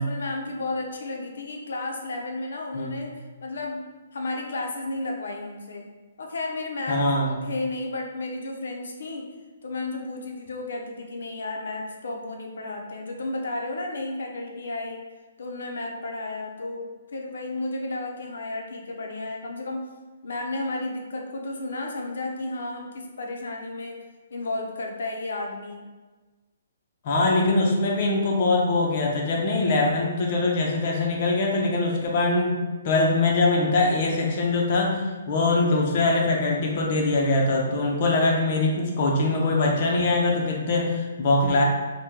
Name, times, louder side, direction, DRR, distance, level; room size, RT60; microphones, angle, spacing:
voice 1, 0.0-3.1 3.4-3.9 4.1-5.9 6.2-7.0 7.3-9.2 9.6-15.0 15.4-19.9 20.2-24.0 24.3-25.8, left 2 dB, 75° left, 1 dB, 0.6 m, -32 dB
voice 2, 6.9-7.3 27.0-32.6 32.8-41.6, left 2 dB, 40° left, -1 dB, 0.6 m, -22 dB
2.8 x 2.2 x 3.5 m, 1.3 s
hypercardioid pair, 165°, 0 cm